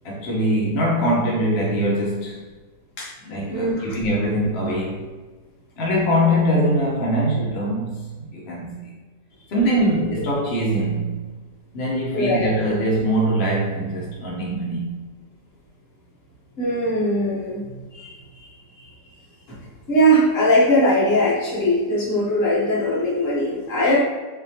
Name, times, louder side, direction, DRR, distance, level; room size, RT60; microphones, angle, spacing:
voice 1, 0.0-2.5 3.2-5.1 5.8-8.9 9.5-11.2 11.7-15.0, equal, 65° left, -3 dB, 0.6 m, -22 dB
voice 2, 3.5-4.0 12.1-12.5 16.6-17.7 17.9-18.1 18.8-18.9 19.5-19.6 19.9-24.0, equal, 50° left, -5 dB, 1.2 m, -20 dB
4.1 x 2.7 x 2.8 m, 1.3 s
omnidirectional pair, 2.0 m